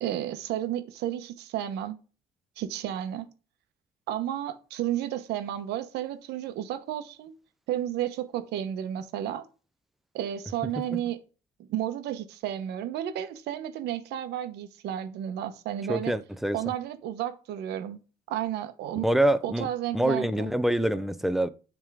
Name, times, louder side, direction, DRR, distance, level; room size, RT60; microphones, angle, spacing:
voice 1, 0.0-2.0 2.6-3.3 4.1-7.3 7.7-9.4 10.1-11.2 11.6-16.1 16.5-18.0 18.3-19.1 19.4-20.5, right 11 dB, 80° right, 1.0 m, -32 dB
voice 2, 15.9-16.6 19.0-19.7 19.9-21.5, right 1 dB, ahead, 0.5 m, -25 dB
9.7 x 3.6 x 3.5 m
cardioid pair, 110°, 17 cm